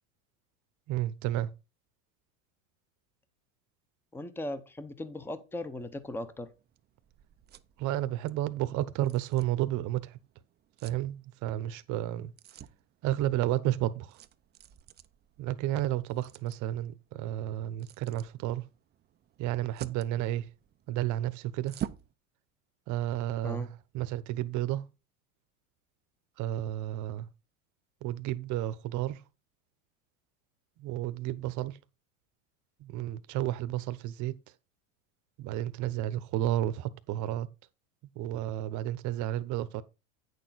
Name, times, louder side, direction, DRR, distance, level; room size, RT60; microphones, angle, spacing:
voice 1, 0.9-1.5 7.8-10.2 10.8-12.3 13.0-14.2 15.4-18.7 19.4-20.5 20.9-21.8 22.9-23.7 23.9-24.8 26.4-27.3 28.0-29.2 30.8-31.8 32.8-34.4 35.4-37.5 38.2-39.8, right 13 dB, 45° right, 1.0 m, -31 dB
voice 2, 4.1-6.5 23.4-23.7, left 1 dB, 5° left, 0.8 m, -38 dB
sound 1, 5.8-22.1, right 11 dB, 25° right, 0.5 m, -49 dB
8.8 x 6.6 x 4.1 m
supercardioid pair, 115°, 40 cm